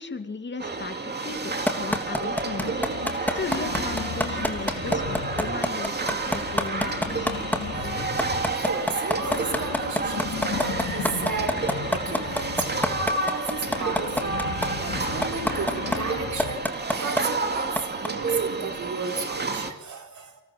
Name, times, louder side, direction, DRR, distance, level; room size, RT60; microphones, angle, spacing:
voice 1, 0.0-2.8 3.1-7.3 7.8-8.1, left 4 dB, 40° left, 7 dB, 2.6 m, -36 dB
sound 1, 0.6-19.7, right 3 dB, 35° right, 2.8 m, -30 dB
sound 2, 1.7-7.6 8.0-14.7 15.2-16.0 16.4-17.2 17.8-18.1, left 1 dB, 5° left, 2.8 m, -24 dB
sound 3, 2.3-5.7 6.2-8.7 9.0-16.6, left 6 dB, 80° left, 3.7 m, -36 dB
voice 2, 7.7-8.0 8.5-14.4 14.8-20.4, right 4 dB, 75° right, 4 dB, 4.5 m, -34 dB
29.5 x 25.5 x 7.7 m, 0.95 s
wide cardioid pair, 170°, 30 cm